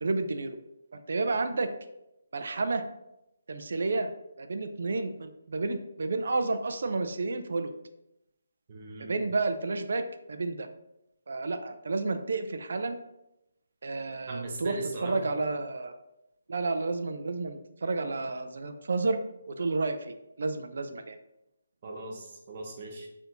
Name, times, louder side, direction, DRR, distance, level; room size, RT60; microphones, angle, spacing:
voice 1, 0.0-0.6 1.1-1.7 2.3-2.8 3.5-4.1 4.4-7.7 9.1-10.7 11.3-13.0 13.8-15.9 16.5-19.2 19.5-21.2, right 3 dB, 60° right, 8 dB, 0.4 m, -31 dB
voice 2, 8.7-9.3 14.3-15.3 21.8-23.1, right 3 dB, 35° right, 0 dB, 0.8 m, -39 dB
3.4 x 2.6 x 4.3 m, 0.89 s
hypercardioid pair, 170°, 0 cm